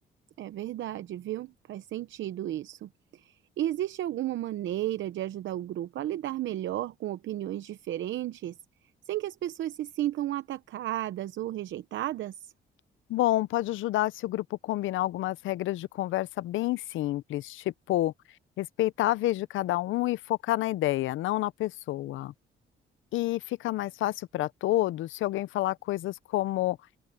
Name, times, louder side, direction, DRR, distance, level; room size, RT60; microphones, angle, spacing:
voice 1, 0.4-8.6 9.1-12.5, right 13 dB, 75° right, 0.8 m, -33 dB
voice 2, 13.1-18.1 18.6-22.3 23.1-26.8, left 16 dB, 80° left, 0.6 m, -29 dB
open air
cardioid pair, 90°, 20 cm